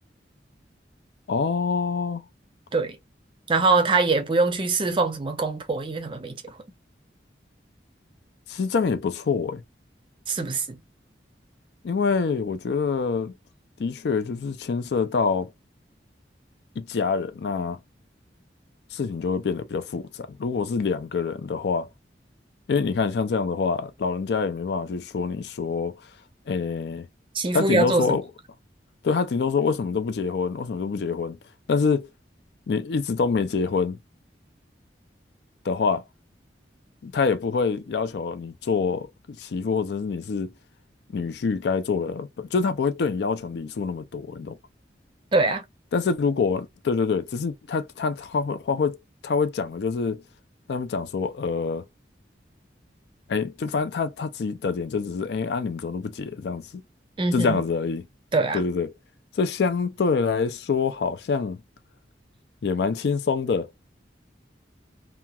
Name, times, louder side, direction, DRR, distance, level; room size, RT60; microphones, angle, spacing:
voice 1, 1.3-2.2 8.5-9.6 11.8-13.3 13.8-15.5 16.8-17.8 18.9-21.9 22.7-26.0 26.5-27.1 27.5-28.2 29.0-31.4 31.7-32.1 32.7-34.0 35.6-36.0 37.0-40.5 41.1-44.6 45.9-49.0 49.2-50.2 50.7-51.8 53.3-56.7 57.3-58.0 58.5-58.9 59.4-61.6 62.6-63.7, left 5 dB, 70° left, 0.4 m, -26 dB
voice 2, 3.5-6.5 10.3-10.8 27.3-28.2 45.3-45.6 57.2-57.6 58.3-58.6, right 3 dB, 30° right, 0.5 m, -23 dB
2.9 x 2.2 x 2.3 m
head